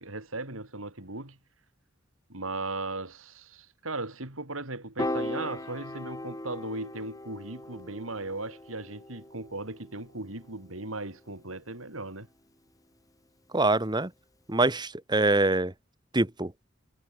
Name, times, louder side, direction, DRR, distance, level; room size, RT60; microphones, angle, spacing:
voice 1, 0.0-1.4 2.3-12.3, right 2 dB, 85° right, 4.9 m, -37 dB
Piano, 5.0-11.4, left 1 dB, 15° left, 3.6 m, -38 dB
voice 2, 13.5-14.1 14.5-15.7 16.1-16.5, right 2 dB, 20° right, 1.6 m, -24 dB
head